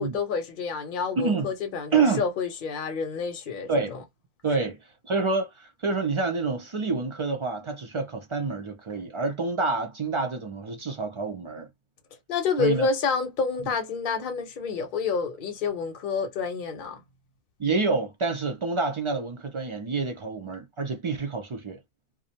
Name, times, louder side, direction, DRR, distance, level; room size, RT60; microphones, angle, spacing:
voice 1, 0.0-4.0 4.6-4.7 12.3-17.0, left 5 dB, 55° left, 0.8 m, -29 dB
voice 2, 1.2-1.5 1.9-2.2 3.7-3.9 4.4-11.7 12.6-12.9 17.6-21.8, right 4 dB, 50° right, 0.3 m, -27 dB
2.5 x 2.1 x 2.8 m
omnidirectional pair, 1.1 m